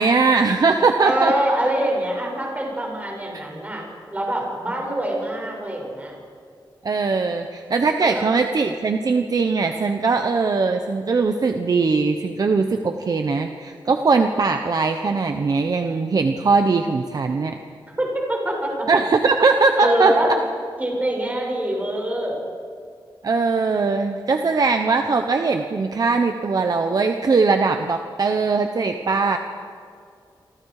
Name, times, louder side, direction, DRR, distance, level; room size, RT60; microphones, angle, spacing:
voice 1, 0.0-1.3 3.3-3.4 6.8-17.6 18.9-20.1 23.2-29.4, right 4 dB, 50° right, 5 dB, 1.1 m, -20 dB
voice 2, 1.0-6.1 8.0-8.2 18.0-18.9 19.8-20.3 20.8-22.4, right 1 dB, 20° right, -1 dB, 6.7 m, -24 dB
28.5 x 24.5 x 5.0 m, 2.3 s
wide cardioid pair, 150°, 8 cm